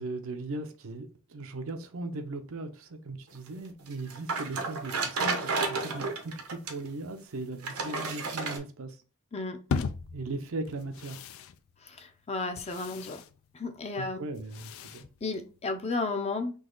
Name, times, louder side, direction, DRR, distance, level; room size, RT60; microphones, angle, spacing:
voice 1, 0.0-9.0 10.1-11.2 14.0-15.1, right 2 dB, 65° right, 0.6 m, -38 dB
sound 1, 3.9-6.9 7.6-8.6, right 4 dB, 85° right, 1.0 m, -31 dB
sound 2, 9.7-15.9, left 5 dB, 65° left, 0.4 m, -39 dB
voice 2, 11.8-13.2 13.5-14.2 15.2-16.5, left 3 dB, 30° left, 0.6 m, -33 dB
4.0 x 2.9 x 3.8 m
head